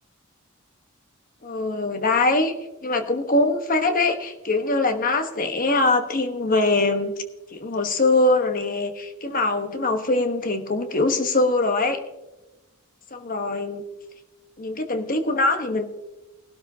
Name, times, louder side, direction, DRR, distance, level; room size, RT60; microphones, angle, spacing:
voice 1, 1.4-2.5 2.8-7.1 7.5-12.0 13.1-13.8 14.6-15.8, left 2 dB, 40° left, 7 dB, 1.1 m, -22 dB
19.5 x 12.5 x 2.8 m, 1.1 s
head